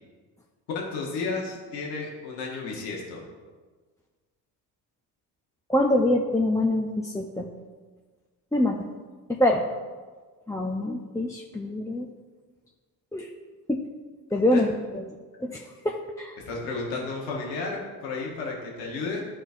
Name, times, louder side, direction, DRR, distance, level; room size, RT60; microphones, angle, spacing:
voice 1, 0.7-3.2 14.5-14.6 16.5-19.2, left 3 dB, 85° left, -2 dB, 1.4 m, -32 dB
voice 2, 5.7-7.5 8.5-8.9 9.3-9.7 10.5-12.1 13.1-13.3 13.7-13.9 14.3-15.1 15.4-16.4, left 1 dB, 5° left, -1 dB, 0.6 m, -25 dB
12.0 x 4.5 x 2.6 m, 1.4 s
hypercardioid pair, 55°, 48 cm